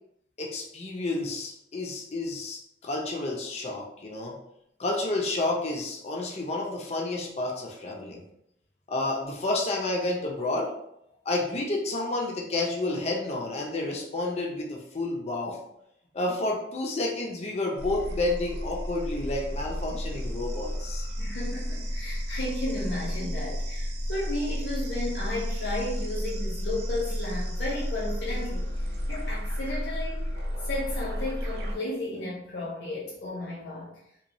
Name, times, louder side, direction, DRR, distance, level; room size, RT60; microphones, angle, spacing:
voice 1, 0.4-4.4 4.8-8.2 8.9-10.7 11.2-15.7 16.1-21.1, left 2 dB, 40° left, -1 dB, 0.5 m, -30 dB
sound 1, 17.8-31.7, equal, 65° right, 0.5 m, -32 dB
voice 2, 21.2-33.9, left 1 dB, 70° left, -6 dB, 0.8 m, -34 dB
2.9 x 2.2 x 2.6 m, 0.75 s
head